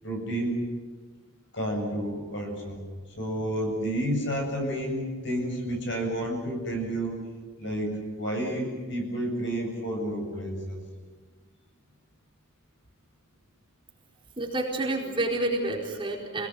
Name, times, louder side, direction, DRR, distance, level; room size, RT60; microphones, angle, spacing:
voice 1, 0.0-0.6 1.5-2.8 3.2-7.2 7.6-10.8, right 1 dB, 60° left, 2 dB, 7.9 m, -30 dB
voice 2, 14.4-16.5, right 2 dB, 25° right, -1 dB, 4.5 m, -29 dB
28.5 x 19.5 x 9.3 m, 1.4 s
head